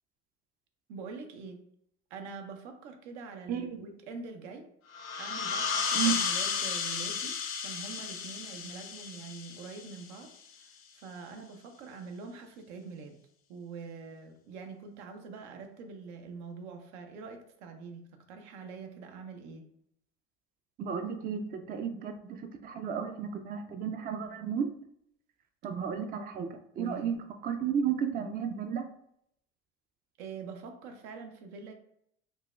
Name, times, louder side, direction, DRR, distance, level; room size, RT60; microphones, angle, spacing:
voice 1, 0.9-1.6 2.1-4.7 5.1-10.3 10.6-13.2 13.5-18.0 18.3-19.7 26.8-27.1 30.2-31.7, right 4 dB, 75° right, 5 dB, 0.7 m, -44 dB
voice 2, 3.5-3.9 5.9-6.2 20.8-24.7 25.6-27.2 27.4-28.8, right 7 dB, 25° right, 6 dB, 0.4 m, -33 dB
sound 1, 4.9-10.3, left 6 dB, 40° left, 0.5 m, -33 dB
3.9 x 2.3 x 2.4 m, 0.71 s
hypercardioid pair, 85°, 34 cm